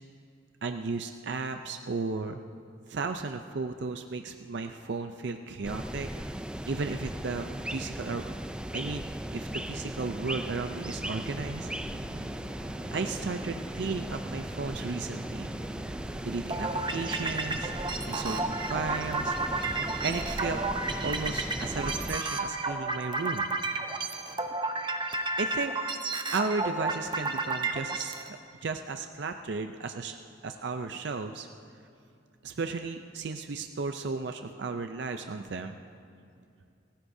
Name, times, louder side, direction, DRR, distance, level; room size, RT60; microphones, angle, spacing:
voice 1, 0.6-2.4 2.9-6.1 6.7-7.5 7.7-8.3 8.7-9.0 9.3-11.7 12.9-15.5 16.2-17.7 18.1-19.4 20.0-20.6 21.0-23.5 25.4-25.7 26.3-30.2 30.4-31.5 32.4-35.8, right 4 dB, 60° right, 6 dB, 0.5 m, -34 dB
sound 1, 5.6-22.2, right 1 dB, 5° right, 0.3 m, -37 dB
sound 2, 10.4-17.8, right 2 dB, 90° right, 0.8 m, -48 dB
sound 3, 16.5-28.3, right 3 dB, 25° right, 0.8 m, -32 dB
26.5 x 14.5 x 2.7 m, 2.5 s
head